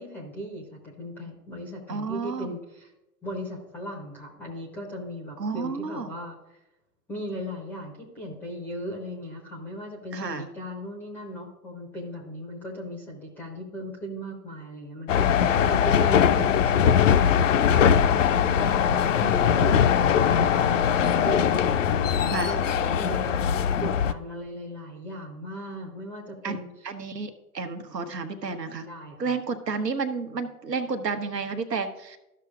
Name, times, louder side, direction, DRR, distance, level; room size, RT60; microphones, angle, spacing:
voice 1, 0.0-2.9 3.2-6.6 7.1-21.7 22.4-26.9 28.9-29.4, equal, 5° left, 0 dB, 0.5 m, -38 dB
voice 2, 1.9-2.5 5.4-6.1 10.1-10.5 19.2-19.8 22.3-22.5 26.4-26.6 26.8-28.9 29.2-32.2, right 4 dB, 80° right, 8 dB, 1.1 m, -31 dB
sound 1, 15.1-24.1, left 8 dB, 50° left, 0.5 m, -21 dB
13.5 x 6.0 x 2.4 m, 0.93 s
figure-of-eight pair, 115°, 49 cm